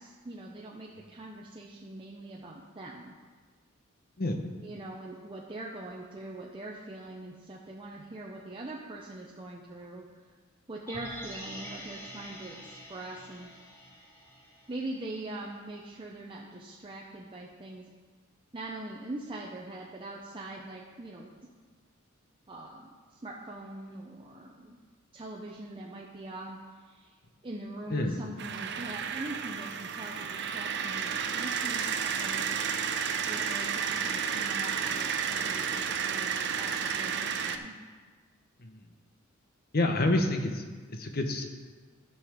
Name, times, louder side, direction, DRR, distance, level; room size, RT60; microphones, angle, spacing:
voice 1, 0.0-3.2 4.6-10.0 10.7-13.5 14.7-17.9 18.5-21.3 22.5-24.8 25.1-26.6 26.9-27.1 27.4-32.5 33.3-37.8, right 2 dB, 25° right, -2 dB, 0.7 m, -42 dB
sound 1, 10.9-15.1 15.4-15.5, equal, 15° left, 1.7 m, -45 dB
voice 2, 27.9-28.2 38.6-38.8 39.7-40.6 40.9-41.5, left 2 dB, 50° left, 5 dB, 1.0 m, -28 dB
sound 2, 28.4-37.6, right 7 dB, 60° right, 0.6 m, -32 dB
12.0 x 5.6 x 5.0 m, 1.5 s
head